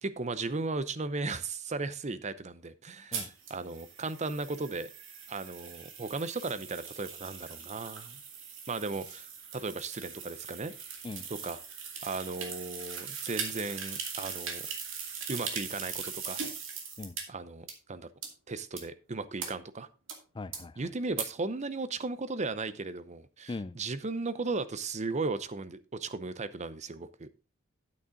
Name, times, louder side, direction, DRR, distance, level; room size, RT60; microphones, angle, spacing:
voice 1, 0.0-3.2 3.5-4.9 5.3-8.2 8.7-10.7 11.3-11.6 12.0-14.7 15.3-16.4 17.3-18.1 18.5-19.9 20.8-27.3, right 3 dB, 35° right, 0.7 m, -36 dB
sound 1, 3.1-17.2 17.7-17.8 18.2-18.3 18.8-18.9 19.4-19.5 20.1-20.2 20.5-20.6 21.2-21.3, right 6 dB, 60° right, 2.4 m, -40 dB
voice 2, 20.3-20.8 23.5-23.8, left 3 dB, 20° left, 0.4 m, -40 dB
9.5 x 8.5 x 3.8 m
head